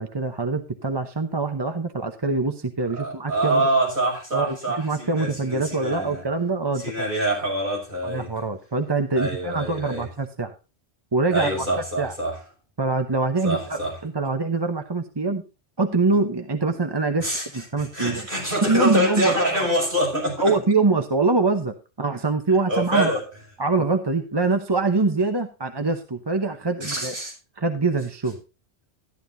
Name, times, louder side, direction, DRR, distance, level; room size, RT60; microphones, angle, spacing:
voice 1, 0.0-3.6 4.3-7.1 8.0-10.5 11.1-11.5 12.0-12.1 12.8-15.4 15.8-17.3 17.5-18.3 18.6-19.7 20.4-23.1 23.6-27.1 27.6-28.4, right 3 dB, 25° right, 0.8 m, -24 dB
voice 2, 2.9-6.2 6.8-8.3 9.2-10.1 11.3-12.4 13.4-14.0 17.2-20.6 22.7-23.2 26.8-27.3, right 1 dB, 45° right, 6.1 m, -25 dB
13.0 x 11.5 x 2.7 m
omnidirectional pair, 1.2 m